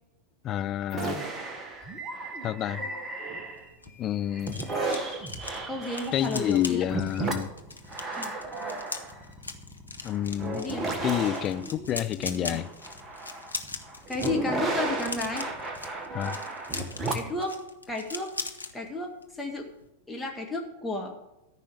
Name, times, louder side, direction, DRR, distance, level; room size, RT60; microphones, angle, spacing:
voice 1, 0.4-1.2 2.4-2.9 4.0-4.7 6.1-7.5 10.0-10.6 11.0-12.7 16.1-16.4, left 11 dB, 30° left, 0.5 m, -29 dB
sound 1, 0.9-3.9 4.3-17.4, right 2 dB, 20° right, 1.6 m, -34 dB
sound 2, 3.5-18.7 19.1-19.3 19.6-19.9, left 3 dB, 80° left, 1.0 m, -40 dB
voice 2, 5.7-6.8 8.1-8.3 10.5-11.1 14.1-15.4 17.1-17.6 17.9-18.3 18.7-19.7 20.1-21.1, left 2 dB, 5° left, 1.7 m, -32 dB
14.0 x 5.6 x 8.1 m
figure-of-eight pair, 90°, 0 cm